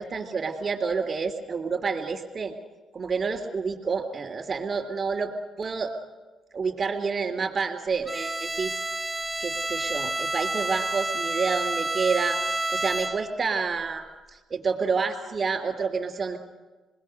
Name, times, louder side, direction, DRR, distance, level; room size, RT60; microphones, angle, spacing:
voice 1, 0.0-2.5 2.9-5.9 6.5-8.7 9.4-12.4 12.7-14.0 14.5-16.4, right 5 dB, 45° right, 4 dB, 3.2 m, -28 dB
Bowed string instrument, 8.1-13.5, right 2 dB, 15° right, 0.7 m, -29 dB
27.5 x 20.5 x 6.7 m, 1.3 s
cardioid pair, 90°, 0 cm